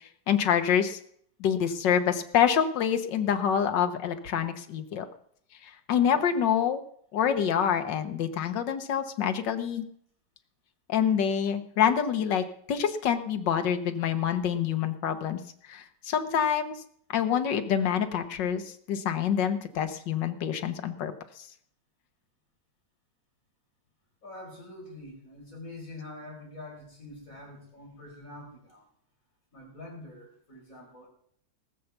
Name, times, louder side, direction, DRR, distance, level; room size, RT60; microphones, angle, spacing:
voice 1, 0.3-1.0 1.4-5.1 5.6-6.8 7.1-9.8 10.9-15.4 15.7-16.8 17.1-21.1, left 8 dB, 80° left, 7 dB, 1.7 m, -26 dB
voice 2, 24.2-28.8 29.5-31.1, left 2 dB, 50° left, -3 dB, 5.2 m, -45 dB
19.0 x 6.7 x 7.1 m, 0.64 s
omnidirectional pair, 1.9 m